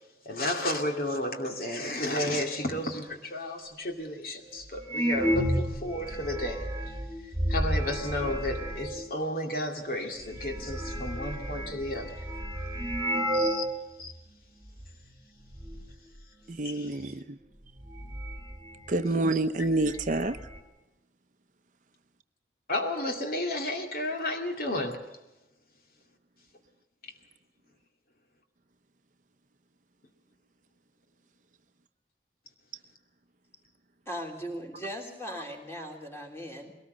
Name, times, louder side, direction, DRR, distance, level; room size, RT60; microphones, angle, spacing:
voice 1, 0.2-6.7 7.5-12.2 13.3-13.7 14.0-14.1 16.6-17.0 18.9-19.0 19.6-19.7 22.7-25.0, left 1 dB, 55° left, 3 dB, 2.5 m, -32 dB
sound 1, 3.4-3.5 4.2-4.3 4.8-9.1 9.9-10.0 10.2-13.8 14.1-14.2 14.8-15.1 15.4-15.9 17.2-17.3 17.7-19.2 19.5-19.6 19.9-20.6, equal, 20° right, 1.9 m, -32 dB
voice 2, 16.5-17.4 18.9-20.4, right 2 dB, 45° right, 10 dB, 0.8 m, -28 dB
voice 3, 34.0-36.7, equal, 15° left, 2 dB, 3.2 m, -38 dB
21.5 x 19.0 x 6.6 m, 1.0 s
head